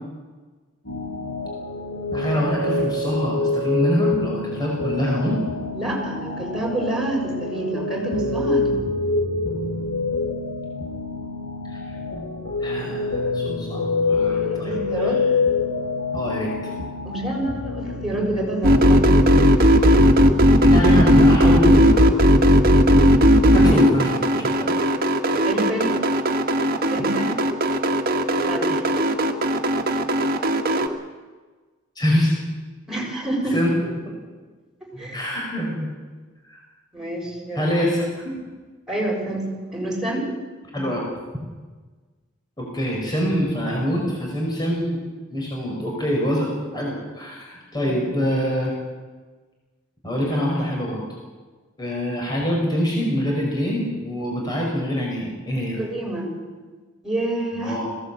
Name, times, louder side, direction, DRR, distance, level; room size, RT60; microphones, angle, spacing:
sound 1, 0.8-19.4, left 3 dB, 80° left, 6.4 m, -26 dB
voice 1, 2.1-5.4 11.7-11.9 12.6-13.8 14.1-15.2 16.1-16.5 20.3-22.2 23.5-24.7 31.9-32.3 33.5-33.7 35.1-35.9 36.4-36.6 37.5-38.5 40.7-41.0 42.6-45.0 45.3-48.7 50.0-51.0 51.8-55.8 57.5-57.9, equal, 20° left, -2 dB, 5.0 m, -25 dB
voice 2, 5.7-8.9 14.5-15.2 17.0-19.3 23.4-23.8 25.4-26.0 26.9-27.4 28.4-28.8 32.9-33.6 34.9-35.2 36.9-37.7 38.9-40.3 47.8-48.0 55.8-56.3 57.0-57.8, right 1 dB, ahead, -2 dB, 6.9 m, -28 dB
sound 2, 18.6-30.9, equal, 50° right, 1.8 m, -16 dB
21.0 x 16.5 x 8.4 m, 1.4 s
head